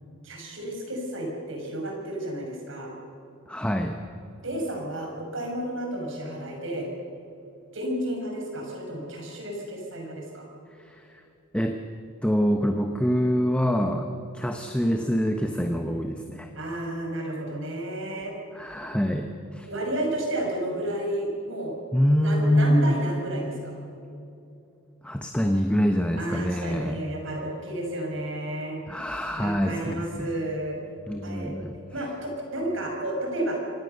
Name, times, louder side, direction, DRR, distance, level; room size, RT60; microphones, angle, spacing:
voice 1, 0.2-2.9 4.4-6.9 7.7-10.5 16.5-18.3 19.7-21.7 22.2-23.8 26.2-29.1 29.3-30.8 31.2-31.5 31.9-33.6, right 1 dB, 60° right, 1 dB, 6.0 m, -32 dB
voice 2, 3.5-4.0 10.8-11.2 11.5-11.8 12.2-16.5 18.5-19.7 21.9-23.0 25.0-27.0 28.9-30.3 31.1-31.8, equal, 5° left, 4 dB, 1.0 m, -25 dB
25.5 x 18.0 x 6.8 m, 2.8 s
head